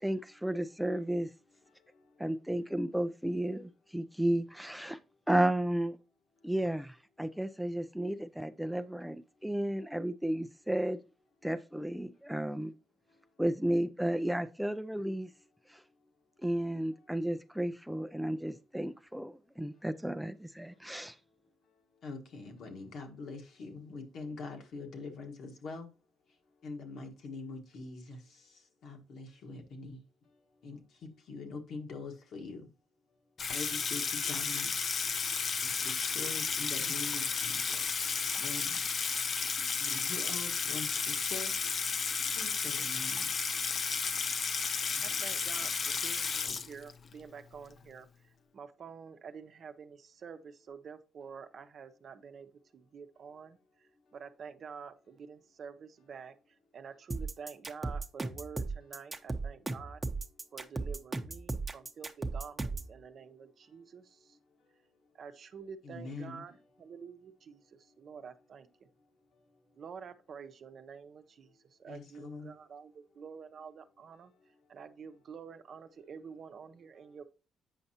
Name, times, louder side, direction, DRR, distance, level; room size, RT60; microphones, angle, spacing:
voice 1, 0.0-1.3 2.2-5.0 5.3-6.0 6.4-11.0 11.4-12.7 13.4-15.3 15.7-15.8 16.4-21.2, right 1 dB, 5° right, 0.4 m, -33 dB
voice 2, 22.0-25.9 26.6-28.2 28.8-30.0 30.6-30.8 31.3-32.7 33.5-34.7 35.6-37.8 38.4-38.8 39.8-41.5 42.3-43.3 45.0-45.2 45.6-45.7 65.8-66.5 71.9-72.5, left 3 dB, 70° left, 1.5 m, -44 dB
Water tap faucet / Sink (filling or washing), 33.4-47.1, left 5 dB, 50° left, 0.6 m, -33 dB
voice 3, 45.0-56.4 56.7-60.0 60.5-64.4 65.1-68.7 69.8-74.3 74.7-77.2, right 6 dB, 55° right, 0.7 m, -48 dB
sound 1, 57.1-62.9, right 3 dB, 20° right, 0.9 m, -36 dB
8.1 x 5.3 x 2.8 m
cardioid pair, 90°, 0 cm